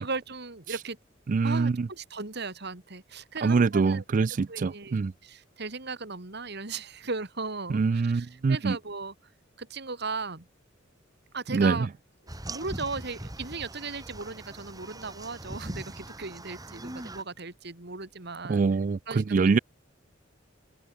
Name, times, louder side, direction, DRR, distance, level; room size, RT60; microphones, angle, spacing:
voice 1, 0.0-1.0 1.4-4.0 4.5-9.1 9.6-10.5 11.3-11.9 12.5-18.6 19.1-19.2, right 4 dB, 60° right, 2.6 m, -37 dB
voice 2, 1.3-1.9 3.4-5.1 7.7-8.8 11.5-11.9 18.5-19.6, right 4 dB, 40° right, 0.4 m, -24 dB
sound 1, 12.3-17.2, right 1 dB, 20° right, 3.1 m, -41 dB
head